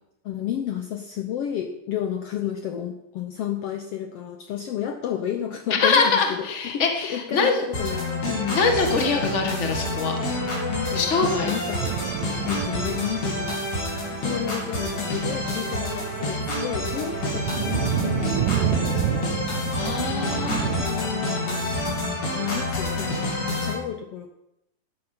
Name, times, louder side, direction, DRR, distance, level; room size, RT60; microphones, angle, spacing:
voice 1, 0.2-8.6 10.7-12.1 12.5-13.6 14.2-19.5 20.1-24.3, left 10 dB, 80° left, 5 dB, 1.3 m, -32 dB
voice 2, 5.7-7.6 8.5-10.2 10.9-11.5 19.8-20.7, left 4 dB, 30° left, 3 dB, 1.3 m, -23 dB
sound 1, 7.7-23.7, left 1 dB, 60° left, 4.9 m, -28 dB
sound 2, 11.8-20.8, right 14 dB, 80° right, 2.1 m, -30 dB
13.0 x 9.8 x 6.0 m, 0.86 s
omnidirectional pair, 3.9 m